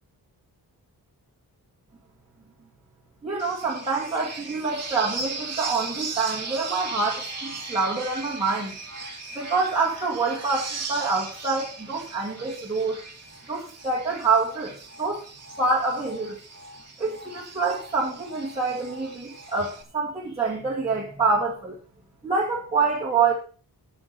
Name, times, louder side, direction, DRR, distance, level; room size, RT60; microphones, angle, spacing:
voice 1, 3.2-8.7 9.3-13.0 13.5-15.2 15.6-16.4 17.0-21.7 22.2-23.3, right 4 dB, 15° right, -6 dB, 2.5 m, -26 dB
sound 1, 3.4-19.8, right 3 dB, 40° right, 2.1 m, -38 dB
15.0 x 6.3 x 4.5 m, 0.39 s
wide cardioid pair, 180°, 38 cm